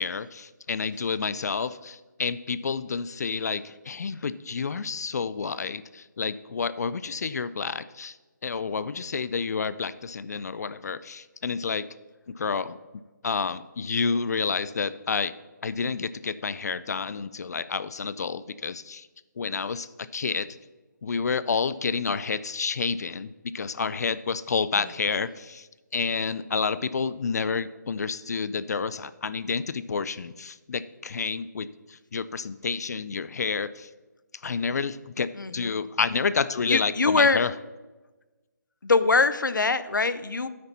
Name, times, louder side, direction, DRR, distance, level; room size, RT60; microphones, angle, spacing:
voice 1, 0.0-8.2 8.4-11.9 12.3-12.8 13.2-15.3 15.6-19.1 19.4-20.5 21.0-25.7 25.9-33.9 34.4-37.5, left 5 dB, 60° left, 16 dB, 0.4 m, -29 dB
voice 2, 35.4-35.7 36.7-37.4 38.8-40.5, left 3 dB, 85° left, 14 dB, 0.7 m, -23 dB
9.5 x 8.2 x 4.2 m, 1.2 s
figure-of-eight pair, 155°, 10 cm